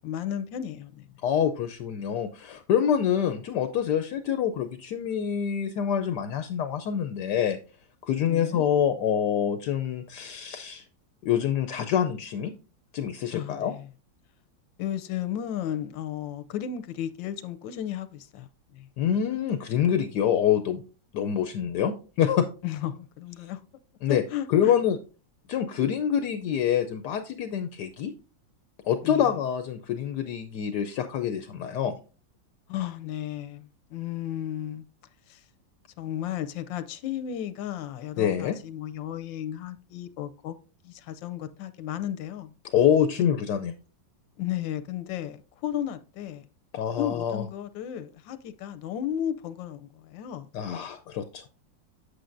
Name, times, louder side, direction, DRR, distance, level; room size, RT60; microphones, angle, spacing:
voice 1, 0.0-1.1 8.3-8.6 13.3-13.9 14.8-18.9 22.6-23.6 24.1-24.7 29.0-29.3 32.7-34.8 35.3-35.4 36.0-40.5 40.8-42.5 44.4-46.5 47.0-50.5, left 10 dB, 90° left, 1.4 m, -34 dB
voice 2, 1.2-7.6 8.0-10.8 11.2-12.5 12.9-13.7 19.0-20.8 21.1-22.5 24.0-24.2 24.5-25.0 25.5-28.1 28.8-32.0 38.2-38.6 42.6-43.7 46.7-47.4 50.5-51.5, left 9 dB, 75° left, 1.1 m, -26 dB
8.2 x 7.9 x 2.5 m
omnidirectional pair, 2.0 m